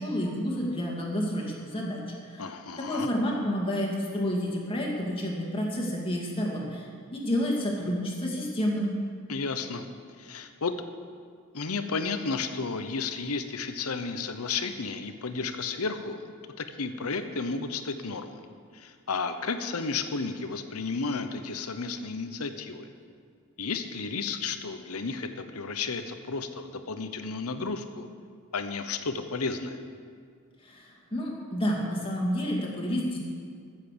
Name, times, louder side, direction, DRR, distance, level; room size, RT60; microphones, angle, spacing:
voice 1, 0.0-2.5 2.8-9.0 30.6-33.2, equal, 25° left, -2 dB, 2.3 m, -30 dB
voice 2, 2.4-3.1 9.3-9.9 10.2-10.7 11.5-16.2 16.6-18.4 18.7-22.9 23.6-28.1 28.5-29.8, left 4 dB, 85° left, 8 dB, 0.9 m, -32 dB
14.0 x 7.6 x 6.8 m, 2.1 s
head